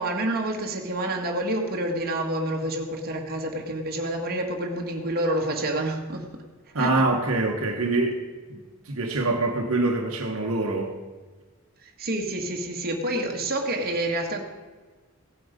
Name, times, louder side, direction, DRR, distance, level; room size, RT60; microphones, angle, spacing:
voice 1, 0.0-6.3 6.8-7.1 11.8-14.4, right 1 dB, 45° right, 1 dB, 1.7 m, -28 dB
voice 2, 6.7-8.2 8.5-10.9, right 2 dB, 75° right, 1 dB, 1.3 m, -25 dB
16.5 x 7.8 x 5.1 m, 1.4 s
head